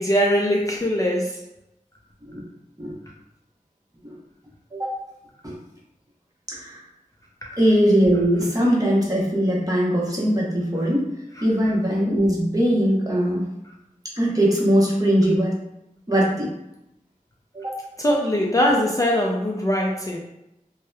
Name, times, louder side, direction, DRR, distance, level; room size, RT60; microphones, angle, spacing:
voice 1, 0.0-1.4 18.0-20.2, equal, 25° left, -2 dB, 0.3 m, -21 dB
voice 2, 6.5-6.8 7.6-11.0 11.4-13.5 14.1-15.5 16.1-16.5 17.5-17.8, equal, 25° right, -5 dB, 0.8 m, -21 dB
2.8 x 2.0 x 2.2 m, 0.86 s
wide cardioid pair, 55°, 14 cm